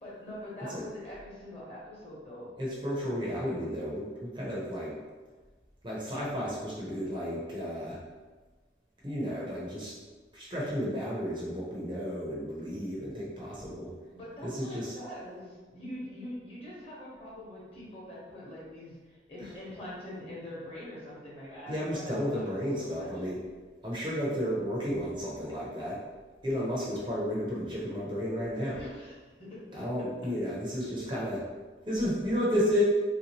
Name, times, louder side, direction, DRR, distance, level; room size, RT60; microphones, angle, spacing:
voice 1, 0.0-2.5 14.1-23.1 28.7-29.8 30.2-30.3, left 1 dB, 35° left, -6 dB, 1.0 m, -44 dB
voice 2, 2.6-4.9 5.8-8.0 9.0-9.9 10.3-13.9 14.4-14.9 21.7-23.4 23.8-26.0 26.4-28.8 29.7-31.4 31.9-32.8, equal, 25° right, -5 dB, 0.6 m, -32 dB
3.4 x 2.8 x 2.9 m, 1.3 s
head